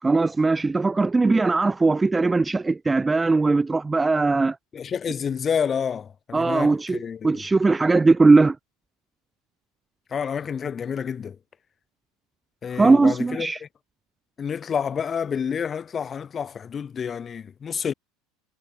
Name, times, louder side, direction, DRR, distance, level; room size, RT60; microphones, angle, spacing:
voice 1, 0.0-4.6 6.3-7.0 7.2-8.6 12.7-13.6, right 3 dB, 15° right, 0.4 m, -19 dB
voice 2, 4.7-7.4 10.1-11.4 12.6-13.7 14.4-17.9, left 7 dB, 30° left, 1.9 m, -29 dB
supercardioid pair, 110°, 0 cm